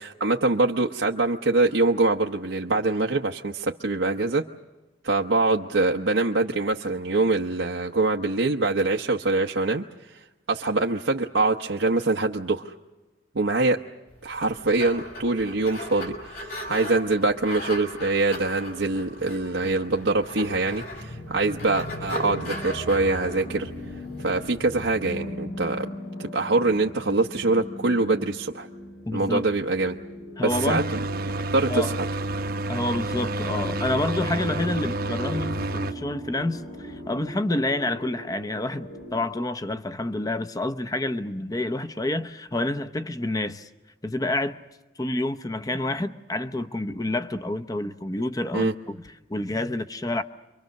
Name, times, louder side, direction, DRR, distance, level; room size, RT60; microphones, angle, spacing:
voice 1, 0.2-4.4 5.0-9.8 10.5-12.7 13.3-13.8 14.2-23.7 24.2-25.9 26.2-28.7 29.1-30.0 30.4-31.0 31.5-31.9 48.5-48.7, right 3 dB, 80° right, 1.0 m, -24 dB
sound 1, 14.2-24.9, equal, 50° left, 5.8 m, -37 dB
sound 2, 20.5-39.1, equal, 80° left, 6.9 m, -39 dB
voice 2, 29.1-29.5 30.4-30.9 31.7-31.9 32.7-43.7 44.0-44.6 45.0-50.2, left 2 dB, 20° left, 0.8 m, -28 dB
sound 3, 30.5-35.9, right 2 dB, 50° right, 0.9 m, -29 dB
29.5 x 24.5 x 6.5 m
head